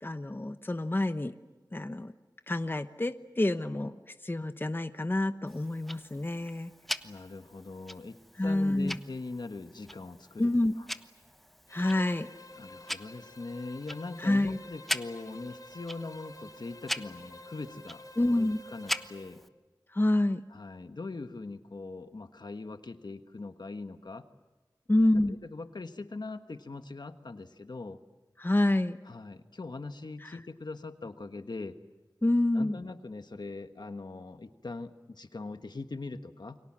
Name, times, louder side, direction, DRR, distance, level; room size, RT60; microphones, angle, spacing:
voice 1, 0.0-1.3 1.7-2.1 2.5-6.7 8.4-9.0 10.4-10.7 11.7-12.3 14.2-14.6 18.2-18.6 19.9-20.4 24.9-25.4 28.4-29.0 30.2-30.4 32.2-32.8, left 1 dB, 30° left, 10 dB, 1.0 m, -28 dB
Tick-tock, 5.5-19.5, equal, ahead, 1.1 m, -42 dB
voice 2, 7.0-8.2 8.4-10.5 10.8-10.9 12.6-19.4 20.5-24.3 25.0-28.0 29.1-31.8 32.5-36.6, left 3 dB, 75° left, 8 dB, 1.4 m, -41 dB
Bowed string instrument, 11.7-19.4, left 1 dB, 55° left, 3.5 m, -49 dB
29.5 x 24.0 x 7.5 m, 1.2 s
wide cardioid pair, 60°, 7 cm